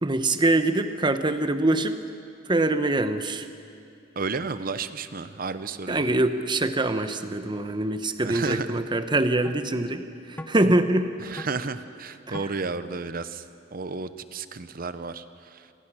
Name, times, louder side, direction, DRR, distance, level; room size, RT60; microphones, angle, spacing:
voice 1, 0.0-2.0 2.5-3.5 5.9-11.1 12.3-12.4, right 2 dB, 25° right, 9 dB, 0.9 m, -24 dB
voice 2, 4.2-6.1 8.2-8.8 11.2-13.4 13.7-15.2 15.5-15.6, right 4 dB, 50° right, 12 dB, 0.8 m, -32 dB
sound 1, 8.5-8.7 9.4-9.6 10.4-10.6 11.4-11.5 12.3-12.6, left 1 dB, 10° left, 1.0 m, -38 dB
27.5 x 18.5 x 6.3 m, 2.4 s
head